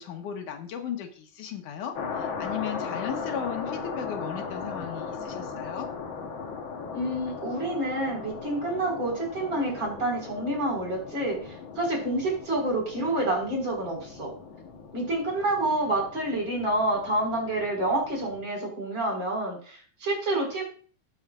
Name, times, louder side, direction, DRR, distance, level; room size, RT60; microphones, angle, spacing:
voice 1, 0.0-5.9, left 8 dB, 80° left, 4 dB, 2.7 m, -35 dB
sound 1, 1.9-18.5, left 5 dB, 55° left, 1.4 m, -38 dB
voice 2, 6.9-14.3 14.9-20.6, right 1 dB, 35° right, -1 dB, 4.8 m, -28 dB
20.0 x 7.2 x 2.5 m, 0.43 s
omnidirectional pair, 3.6 m